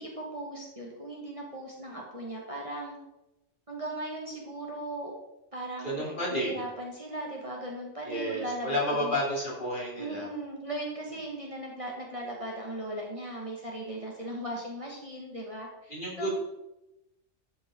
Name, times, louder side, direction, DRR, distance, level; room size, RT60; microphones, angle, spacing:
voice 1, 0.0-3.0 3.7-5.1 5.5-9.2 10.0-16.3, right 1 dB, 25° right, -2 dB, 1.8 m, -38 dB
voice 2, 5.8-6.6 8.0-10.3 15.9-16.3, equal, 40° left, -4 dB, 3.5 m, -31 dB
12.5 x 7.7 x 3.8 m, 0.93 s
omnidirectional pair, 1.3 m